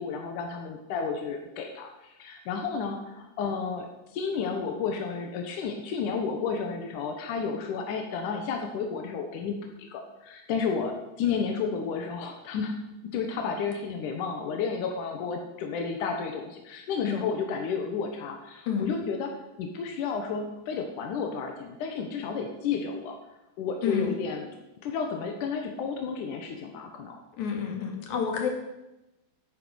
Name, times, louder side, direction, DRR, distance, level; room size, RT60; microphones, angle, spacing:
voice 1, 0.0-3.9 4.1-12.8 13.0-19.3 19.6-23.2 23.6-24.5 24.8-27.2, left 5 dB, 70° left, 3 dB, 1.9 m, -32 dB
voice 2, 18.7-19.0 23.8-24.2 27.4-28.5, left 7 dB, 45° left, 1 dB, 3.1 m, -29 dB
14.5 x 9.4 x 6.4 m, 0.95 s
omnidirectional pair, 5.4 m